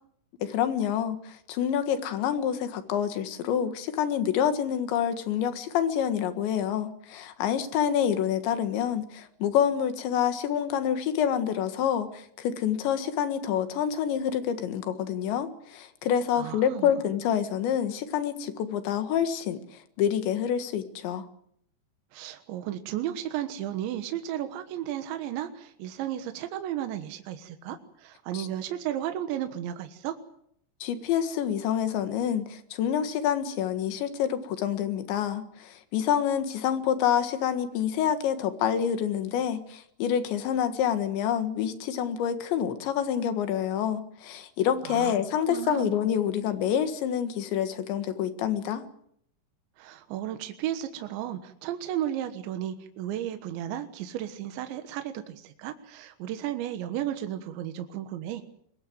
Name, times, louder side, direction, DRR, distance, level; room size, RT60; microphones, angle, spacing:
voice 1, 0.4-19.6 20.0-21.3 28.3-28.5 30.8-48.8, left 9 dB, 75° left, 9 dB, 3.9 m, -27 dB
voice 2, 16.3-16.9 22.1-30.2 44.8-45.1 45.5-45.9 49.8-58.4, right 11 dB, 75° right, 7 dB, 3.6 m, -34 dB
24.0 x 21.5 x 7.8 m, 0.69 s
omnidirectional pair, 5.3 m